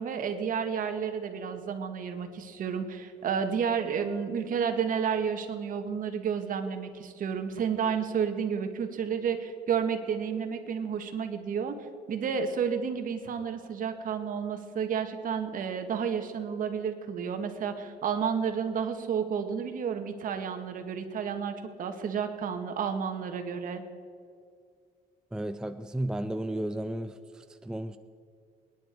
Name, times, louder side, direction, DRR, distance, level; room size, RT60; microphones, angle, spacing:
voice 1, 0.0-11.8 12.1-23.8, right 7 dB, 55° right, 7 dB, 1.6 m, -31 dB
voice 2, 25.3-28.0, right 1 dB, 5° right, 9 dB, 0.5 m, -34 dB
24.5 x 10.0 x 4.6 m, 2.3 s
cardioid pair, 110°, 17 cm